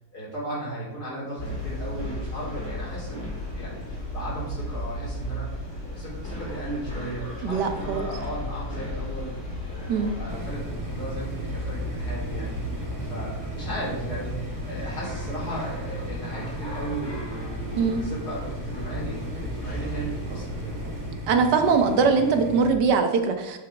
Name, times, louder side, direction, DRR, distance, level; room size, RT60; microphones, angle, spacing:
voice 1, 0.1-3.2 3.5-9.3 9.7-20.8, right 1 dB, 70° left, -7 dB, 4.1 m, -36 dB
sound 1, 1.4-21.1, left 1 dB, 45° left, 2.3 m, -35 dB
voice 2, 7.4-8.1 9.9-10.1 17.8-18.0 21.3-23.6, right 5 dB, 85° right, 6 dB, 1.6 m, -22 dB
sound 2, 10.3-22.8, right 1 dB, 20° right, 0.5 m, -37 dB
8.4 x 7.9 x 3.5 m, 1.1 s
omnidirectional pair, 1.8 m